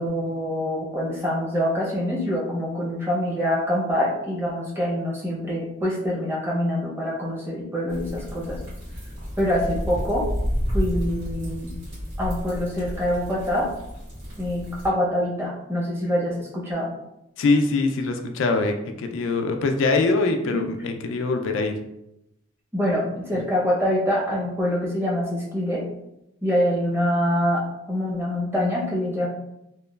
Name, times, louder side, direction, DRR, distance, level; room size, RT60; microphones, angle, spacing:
voice 1, 0.0-8.6 9.4-10.3 10.7-11.7 12.2-13.7 14.4-16.9 20.4-20.6 22.7-25.8 26.4-29.3, equal, 10° right, -5 dB, 0.6 m, -25 dB
sound 1, 7.9-14.9, equal, 75° right, 1.5 m, -31 dB
voice 2, 17.4-21.7, left 3 dB, 80° left, 6 dB, 0.3 m, -23 dB
2.9 x 2.2 x 2.2 m, 0.85 s
head